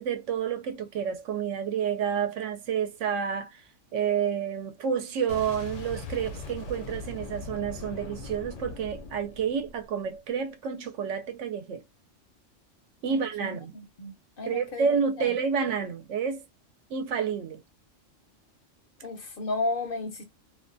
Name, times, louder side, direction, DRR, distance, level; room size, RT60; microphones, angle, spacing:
voice 1, 0.0-3.6 3.9-11.8 13.0-13.7 14.5-16.4 16.9-17.6, right 7 dB, 80° right, 0.9 m, -29 dB
Boom, 5.3-10.1, left 3 dB, 80° left, 1.0 m, -40 dB
voice 2, 13.1-14.9 15.2-15.3 19.0-20.2, left 2 dB, 55° left, 0.7 m, -34 dB
2.5 x 2.2 x 2.5 m
omnidirectional pair, 1.3 m